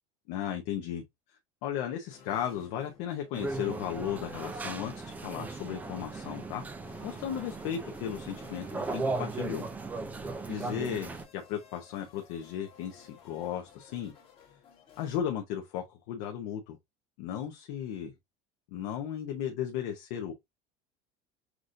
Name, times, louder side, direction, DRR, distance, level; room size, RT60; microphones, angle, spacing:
voice 1, 0.3-1.0 1.6-6.6 7.0-9.7 10.1-14.1 15.0-16.8 17.2-18.1 18.7-20.3, left 9 dB, 65° left, 0.8 m, -35 dB
sound 1, 2.1-15.2, left 7 dB, 35° left, 1.3 m, -56 dB
sound 2, 3.3-11.2, right 3 dB, 10° right, 0.3 m, -37 dB
5.9 x 2.5 x 2.6 m
cardioid pair, 170°, 17 cm